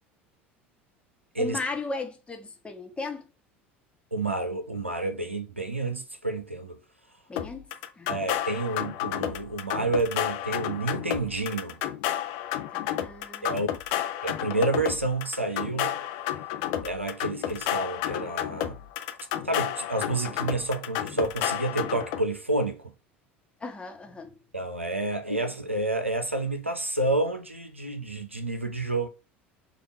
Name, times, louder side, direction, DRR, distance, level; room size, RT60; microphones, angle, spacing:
voice 1, 1.4-3.3 7.3-7.7 8.0-8.1 12.7-13.7 23.6-24.3, left 3 dB, 15° left, 1.1 m, -36 dB
voice 2, 4.1-6.8 8.1-11.8 13.4-13.7 14.2-16.0 16.8-18.8 19.4-22.8 24.5-29.1, right 2 dB, 90° right, 0.6 m, -29 dB
sound 1, 7.4-22.2, left 11 dB, 55° left, 0.6 m, -31 dB
5.1 x 2.5 x 4.0 m
figure-of-eight pair, 70°, 6 cm